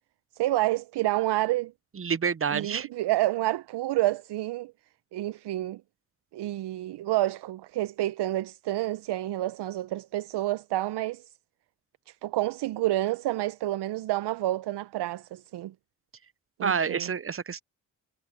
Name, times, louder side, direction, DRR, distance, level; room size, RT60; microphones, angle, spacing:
voice 1, 0.4-1.7 2.5-4.7 5.1-5.8 6.3-11.3 12.1-15.7 16.6-17.1, right 16 dB, 75° right, 0.7 m, -29 dB
voice 2, 1.9-2.9 16.6-17.6, right 6 dB, 35° right, 0.8 m, -28 dB
supercardioid pair, 50°, 41 cm